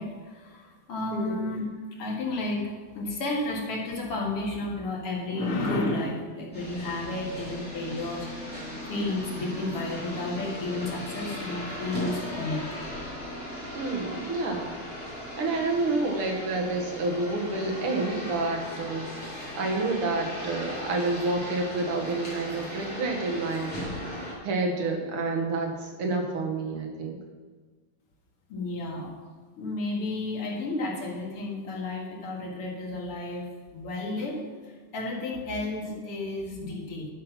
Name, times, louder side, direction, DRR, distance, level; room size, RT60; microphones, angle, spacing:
voice 1, 0.0-1.6 2.0-8.3 8.9-12.6 28.5-29.1 29.6-33.5 33.7-34.4 34.9-37.1, left 2 dB, 90° left, -2 dB, 2.7 m, -32 dB
voice 2, 1.1-1.5 13.7-14.7 15.4-19.0 19.6-24.0 24.4-27.2, right 3 dB, 80° right, 2 dB, 2.3 m, -29 dB
sound 1, 6.5-24.3, equal, 5° left, 3.1 m, -38 dB
11.0 x 5.8 x 5.8 m, 1.4 s
omnidirectional pair, 2.4 m